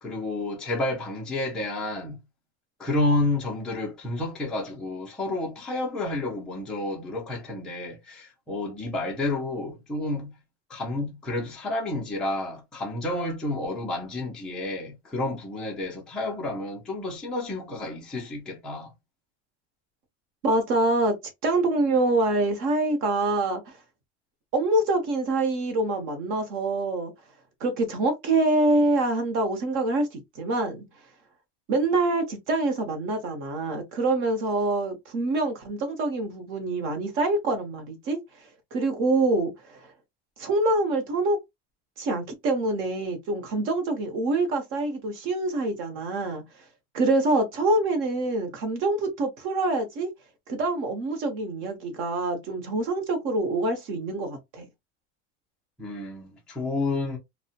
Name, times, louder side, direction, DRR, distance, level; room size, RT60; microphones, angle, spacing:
voice 1, 0.0-2.2 2.8-10.4 10.7-18.9 55.8-57.2, left 2 dB, ahead, 0.3 m, -30 dB
voice 2, 20.4-21.1 21.4-23.6 24.5-27.1 27.6-30.8 31.7-38.2 38.7-39.8 40.4-41.4 42.0-46.4 46.9-50.1 50.5-54.6, right 2 dB, 40° right, 0.8 m, -25 dB
2.6 x 2.1 x 2.7 m
cardioid pair, 175°, 32 cm